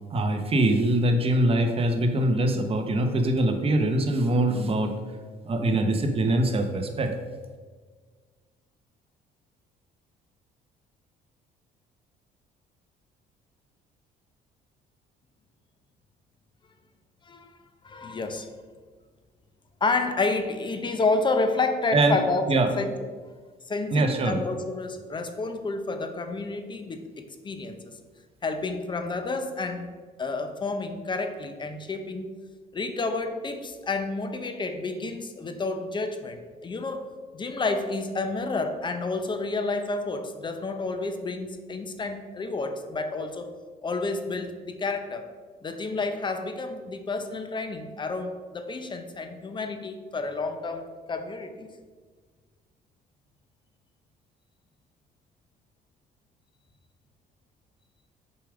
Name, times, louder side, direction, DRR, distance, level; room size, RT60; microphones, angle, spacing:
voice 1, 0.1-4.9 5.4-7.1 21.9-22.2 22.5-22.7 23.9-24.4, right 1 dB, 35° right, 5 dB, 1.0 m, -23 dB
voice 2, 17.8-18.5 19.8-22.5 22.8-22.9 23.7-27.9 28.4-29.9 30.2-32.3 32.7-43.5 43.8-45.3 45.6-51.7, left 3 dB, 25° left, 7 dB, 0.8 m, -30 dB
6.9 x 5.0 x 5.0 m, 1.5 s
cardioid pair, 110°, 17 cm